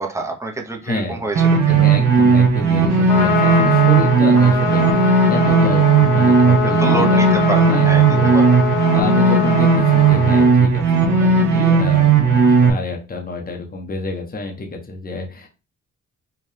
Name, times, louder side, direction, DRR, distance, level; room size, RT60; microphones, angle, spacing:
voice 1, 0.0-1.9 6.8-8.6, right 3 dB, 10° right, 1 dB, 0.9 m, -27 dB
voice 2, 0.8-1.2 1.7-8.6 8.9-15.5, left 2 dB, 30° left, 2 dB, 1.0 m, -29 dB
sound 1, 1.4-12.7, right 5 dB, 85° right, 1.6 m, -15 dB
Trumpet, 2.9-10.5, left 7 dB, 75° left, 0.9 m, -23 dB
4.6 x 2.6 x 3.4 m, 0.30 s
cardioid pair, 100°, 32 cm